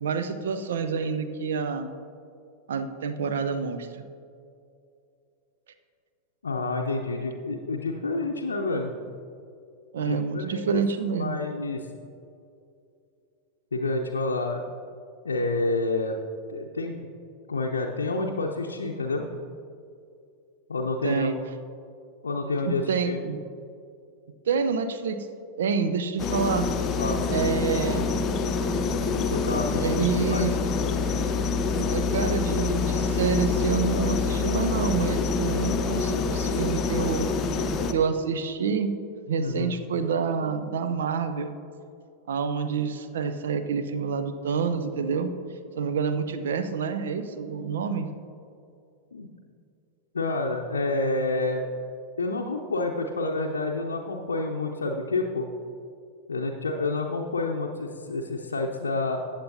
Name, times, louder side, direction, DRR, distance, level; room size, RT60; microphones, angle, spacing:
voice 1, 0.0-1.9 2.7-4.0 9.9-11.4 21.0-21.3 22.6-23.4 24.5-25.2 25.6-26.7 27.3-28.1 29.8-30.5 31.8-37.3 37.9-38.9 39.3-41.5 42.3-45.3 45.7-48.1, right 5 dB, 60° right, 10 dB, 0.6 m, -28 dB
voice 2, 6.4-8.9 10.0-10.8 11.2-11.9 13.7-14.6 15.2-16.2 16.5-17.1 17.5-19.3 20.7-21.4 22.2-23.2 27.0-27.2 29.3-30.4 39.4-39.7 49.1-49.3 50.1-51.7 52.2-55.5 56.3-59.2, left 3 dB, 75° left, 0 dB, 0.6 m, -28 dB
sound 1, 26.2-37.9, left 4 dB, 30° left, 0.7 m, -26 dB
14.5 x 8.9 x 2.7 m, 2.5 s
figure-of-eight pair, 90°, 0 cm